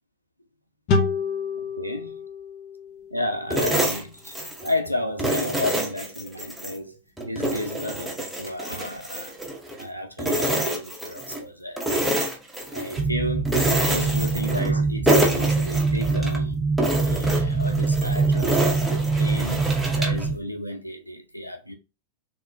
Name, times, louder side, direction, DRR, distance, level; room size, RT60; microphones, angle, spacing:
sound 1, 0.9-4.2, left 4 dB, 45° left, 0.7 m, -29 dB
voice 1, 1.8-2.2 3.1-4.3 4.6-7.0 7.2-9.4 9.8-12.3 12.7-13.6 13.9-16.6 17.0-21.7, left 1 dB, 90° right, 0.4 m, -32 dB
sound 2, 3.5-4.8 5.2-6.8 7.2-9.9 10.2-11.4 11.8-13.0 13.5-14.8 15.1-16.4 16.8-20.3, right 1 dB, 5° right, 0.8 m, -27 dB
sound 3, 13.0-20.4, right 4 dB, 45° right, 0.7 m, -24 dB
3.5 x 2.3 x 2.9 m
figure-of-eight pair, 90°, 0 cm